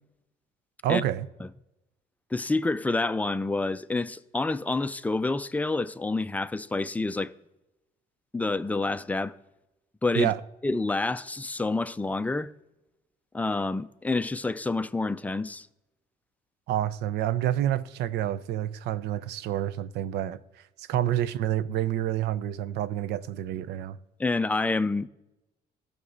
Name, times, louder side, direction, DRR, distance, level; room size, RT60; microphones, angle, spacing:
voice 1, 0.8-1.3 10.1-10.3 16.7-20.4 20.9-24.0, right 12 dB, 85° right, 0.6 m, -28 dB
voice 2, 2.3-7.3 8.3-9.3 10.0-10.3 10.6-12.5 13.3-15.7 24.2-25.1, left 3 dB, 10° left, 0.4 m, -28 dB
17.0 x 6.8 x 4.0 m
cardioid pair, 110°, 17 cm